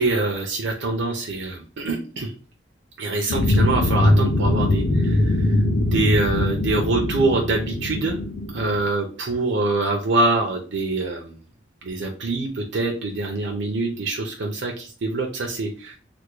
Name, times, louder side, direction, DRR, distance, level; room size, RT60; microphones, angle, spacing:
voice 1, 0.0-2.3 3.0-5.3 5.8-8.2 8.5-11.3 11.8-15.9, right 2 dB, 75° right, 1 dB, 0.5 m, -24 dB
sound 1, 3.3-8.9, left 1 dB, 55° left, 0.5 m, -21 dB
3.4 x 2.1 x 3.1 m, 0.39 s
head